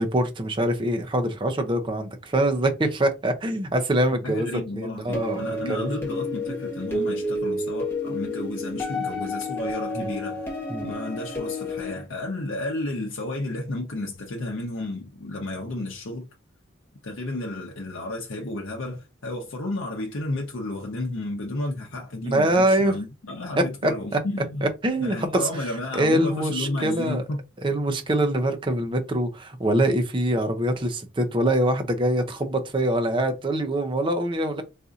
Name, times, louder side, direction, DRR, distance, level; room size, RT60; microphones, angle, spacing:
voice 1, 0.0-5.9 10.0-10.1 10.7-10.9 22.2-22.9 23.6-24.2 24.6-25.5 25.9-27.2 27.6-34.6, right 1 dB, 25° right, 0.5 m, -24 dB
voice 2, 4.2-10.5 10.8-16.3 17.0-24.7 25.0-27.4 27.7-27.8, left 2 dB, 75° left, 0.7 m, -32 dB
sound 1, 5.1-11.9, left 1 dB, 10° left, 1.1 m, -30 dB
4.1 x 2.6 x 2.4 m
head